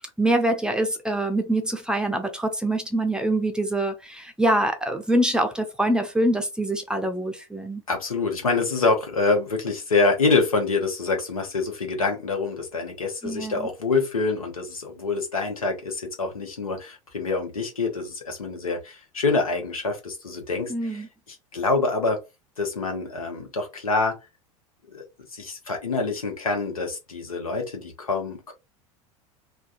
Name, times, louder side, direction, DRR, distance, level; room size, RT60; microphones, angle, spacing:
voice 1, 0.2-7.8 13.2-13.7 20.7-21.1, right 1 dB, 5° right, 0.6 m, -24 dB
voice 2, 7.9-22.2 22.6-24.2 24.9-25.0 25.3-28.5, left 3 dB, 80° left, 0.9 m, -26 dB
3.4 x 2.2 x 2.6 m
figure-of-eight pair, 75°, 18 cm